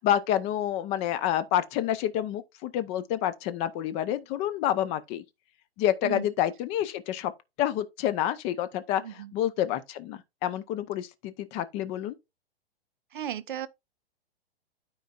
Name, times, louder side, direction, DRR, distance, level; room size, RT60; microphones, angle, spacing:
voice 1, 0.0-5.2 5.8-7.3 7.6-12.1, left 11 dB, 20° left, 0.6 m, -28 dB
voice 2, 9.0-9.3 13.1-13.7, right 10 dB, 55° right, 0.7 m, -35 dB
12.5 x 4.6 x 2.4 m
figure-of-eight pair, 115°, 30 cm